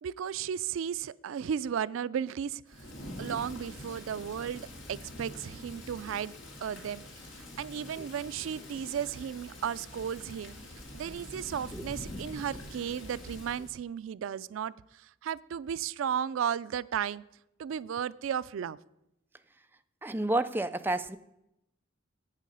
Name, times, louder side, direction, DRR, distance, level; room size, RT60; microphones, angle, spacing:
voice 1, 0.0-2.6 3.2-6.3 6.6-7.0 7.6-10.6 10.9-14.7 15.2-17.2 17.6-18.8, right 8 dB, 85° right, 18 dB, 0.3 m, -34 dB
Thunder / Rain, 2.7-13.8, left 1 dB, 70° left, 2.4 m, -45 dB
voice 2, 20.0-21.2, right 2 dB, 10° right, 9 dB, 0.4 m, -30 dB
11.5 x 8.3 x 5.4 m, 0.84 s
head